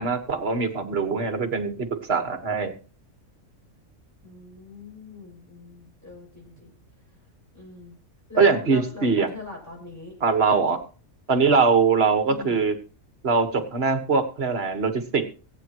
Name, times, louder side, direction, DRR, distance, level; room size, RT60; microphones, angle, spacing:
voice 1, 0.0-2.7 8.4-9.3 10.2-10.8 11.3-12.8 13.2-15.3, right 4 dB, 50° right, 7 dB, 1.8 m, -22 dB
voice 2, 4.2-6.7 7.5-7.9 8.3-10.1 12.3-12.7, left 3 dB, 10° left, -2 dB, 6.8 m, -41 dB
23.5 x 9.1 x 3.1 m, 0.37 s
omnidirectional pair, 1.4 m